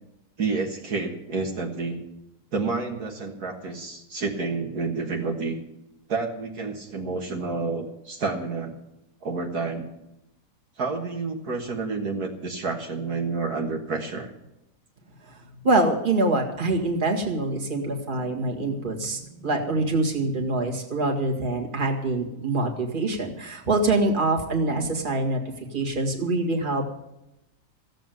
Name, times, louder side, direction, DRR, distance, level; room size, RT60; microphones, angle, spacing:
voice 1, 0.4-2.0 2.5-5.6 6.1-8.7 9.2-9.9 10.8-14.3 24.6-24.9, right 4 dB, 60° right, 1 dB, 2.0 m, -29 dB
voice 2, 15.6-25.4 25.7-26.9, right 2 dB, 30° right, 0 dB, 2.1 m, -25 dB
15.5 x 7.6 x 9.1 m, 0.88 s
omnidirectional pair, 1.9 m